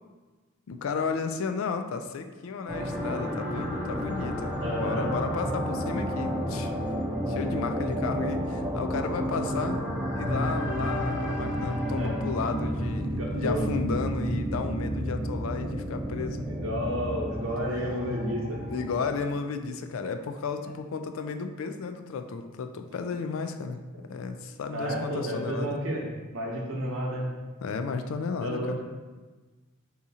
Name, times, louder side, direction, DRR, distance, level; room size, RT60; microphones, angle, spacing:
voice 1, 0.7-6.7 7.3-9.8 10.1-16.5 18.7-25.8 27.6-28.8, left 5 dB, 65° left, 8 dB, 0.3 m, -33 dB
sound 1, 2.7-19.1, equal, 5° right, 0.6 m, -31 dB
voice 2, 4.6-5.0 12.0-12.2 13.0-13.6 16.4-18.6 24.7-26.0 26.3-27.3 28.4-28.8, equal, 60° right, -2 dB, 0.9 m, -31 dB
3.6 x 2.9 x 4.0 m, 1.3 s
head